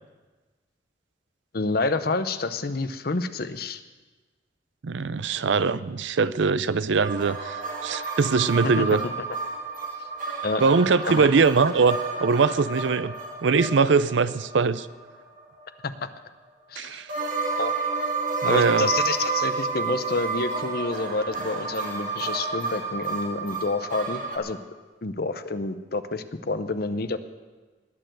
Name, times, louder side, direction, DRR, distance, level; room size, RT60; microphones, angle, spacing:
voice 1, 1.5-3.8 8.8-8.9 10.4-10.6 11.2-11.3 15.8-16.1 16.7-17.0 17.6-17.7 18.4-24.6 25.0-27.2, left 3 dB, 50° left, 11 dB, 0.7 m, -28 dB
voice 2, 4.8-9.0 10.6-13.1 13.4-14.9 16.8-17.1 18.4-18.9, right 4 dB, 75° right, 15 dB, 0.5 m, -22 dB
sound 1, 7.0-15.6 17.1-24.4, right 4 dB, 45° right, 2.4 m, -30 dB
20.0 x 6.9 x 7.7 m, 1.3 s
head